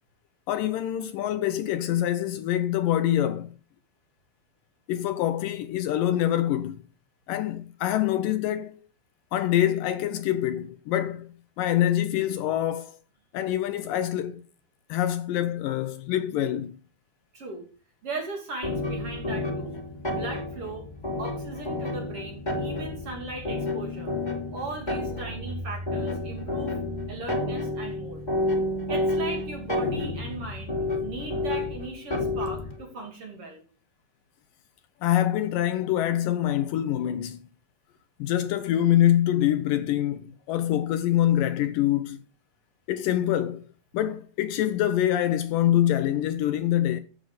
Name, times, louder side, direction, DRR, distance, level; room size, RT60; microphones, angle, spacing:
voice 1, 0.5-3.5 4.9-6.8 7.3-8.8 9.3-11.3 11.6-13.0 13.3-14.4 14.9-16.8 35.0-37.4 38.2-42.2 42.9-43.6 43.9-47.0, left 12 dB, 75° left, 2.2 m, -25 dB
voice 2, 17.3-17.7 18.0-19.7 20.1-20.9 21.2-24.1 24.5-26.7 27.1-28.2 28.9-33.6, right 2 dB, 40° right, 3.4 m, -38 dB
sound 1, 18.6-32.8, left 2 dB, 15° left, 2.7 m, -30 dB
14.5 x 7.7 x 5.1 m
omnidirectional pair, 4.2 m